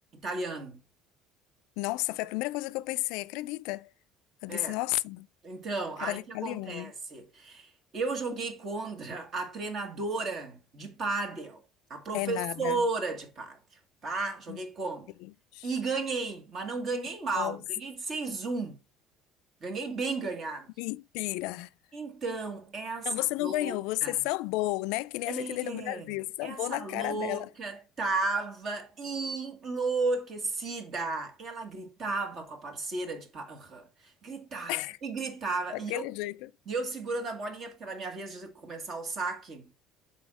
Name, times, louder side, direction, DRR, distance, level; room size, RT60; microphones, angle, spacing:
voice 1, 0.1-0.8 4.5-4.8 5.4-11.6 11.9-13.6 14.0-15.1 15.6-18.8 19.6-20.7 21.9-24.2 25.3-26.0 26.4-36.1 36.7-39.7, right 3 dB, 35° right, 1.6 m, -34 dB
voice 2, 1.8-3.9 4.4-5.3 6.0-6.9 12.1-12.8 14.5-14.6 15.2-15.7 17.3-17.6 20.8-21.7 23.1-27.5 34.7-35.0 35.9-36.5, left 19 dB, 80° left, 0.3 m, -32 dB
6.1 x 4.3 x 4.9 m
cardioid pair, 160°, 0 cm